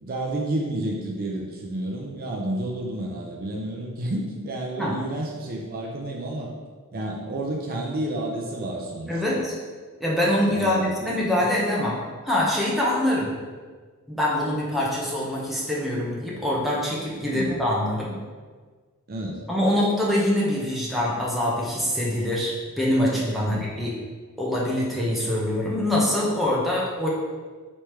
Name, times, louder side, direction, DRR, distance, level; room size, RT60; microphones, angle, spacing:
voice 1, 0.0-6.5 6.9-9.4 10.5-11.2 17.2-17.5 19.1-19.4 23.4-23.7, right 1 dB, 40° right, -1 dB, 0.5 m, -30 dB
voice 2, 9.1-9.6 10.0-12.0 12.2-13.3 14.1-18.2 19.5-23.9 24.4-27.1, left 1 dB, ahead, -6 dB, 0.7 m, -24 dB
3.4 x 3.1 x 4.3 m, 1.4 s
head